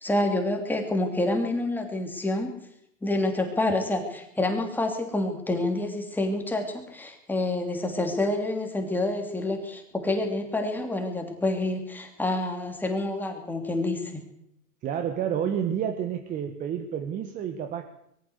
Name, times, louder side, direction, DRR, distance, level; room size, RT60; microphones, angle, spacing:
voice 1, 0.0-2.6 3.0-14.2, left 2 dB, 5° left, 4 dB, 3.0 m, -28 dB
voice 2, 14.8-17.9, right 9 dB, 15° right, 7 dB, 1.3 m, -29 dB
22.0 x 14.5 x 8.1 m, 0.76 s
hypercardioid pair, 140°, 46 cm